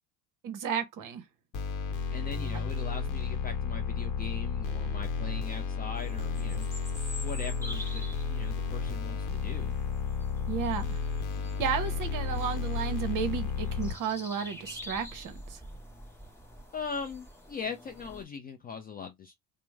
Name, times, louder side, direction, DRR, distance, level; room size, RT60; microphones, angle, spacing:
voice 1, 0.4-1.2 10.5-11.0 11.6-15.6, right 7 dB, 40° right, 0.9 m, -33 dB
sound 1, 1.5-13.9, left 5 dB, 40° left, 0.9 m, -32 dB
voice 2, 2.1-6.7 7.2-9.8 16.7-19.3, left 5 dB, 20° left, 0.4 m, -40 dB
sound 2, 6.0-18.2, left 1 dB, 5° left, 1.0 m, -47 dB
3.0 x 2.1 x 3.3 m
hypercardioid pair, 70°, 49 cm